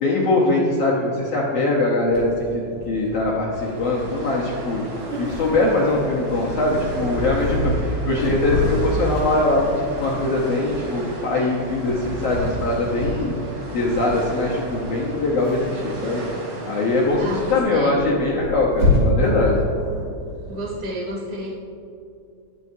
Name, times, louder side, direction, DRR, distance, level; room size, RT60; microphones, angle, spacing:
voice 1, 0.0-3.5 3.8-4.8 5.2-13.3 13.7-16.2 16.7-19.6, left 2 dB, 80° left, -4 dB, 1.3 m, -22 dB
Purr, 2.1-20.8, left 1 dB, 85° right, 4.8 m, -29 dB
sound 1, 3.5-17.6, right 1 dB, 60° right, 4.1 m, -35 dB
voice 2, 17.1-18.0 20.5-21.5, right 1 dB, 5° left, -6 dB, 1.3 m, -31 dB
18.0 x 7.1 x 2.7 m, 2.6 s
omnidirectional pair, 4.4 m